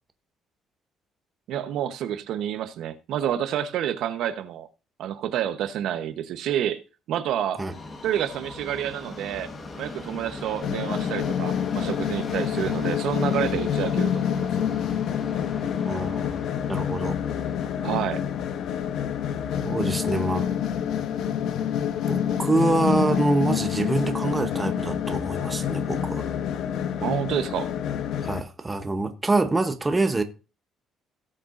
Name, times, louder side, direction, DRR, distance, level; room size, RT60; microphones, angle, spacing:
voice 1, 1.5-4.7 5.0-6.8 7.1-7.6 8.0-9.5 9.8-14.5 17.8-18.2 27.0-27.7, right 10 dB, 65° right, 0.9 m, -28 dB
Subway metro underground, 7.7-21.8 22.1-22.2 23.1-23.2 23.4-23.5 24.2-24.3, left 3 dB, 25° left, 1.3 m, -40 dB
sound 1, 10.6-28.4, left 9 dB, 65° left, 0.8 m, -27 dB
voice 2, 15.8-16.4 16.7-17.2 19.6-20.5 22.1-26.3 28.2-30.2, right 2 dB, 15° right, 0.8 m, -25 dB
17.5 x 6.6 x 2.5 m
cardioid pair, 165°, 0 cm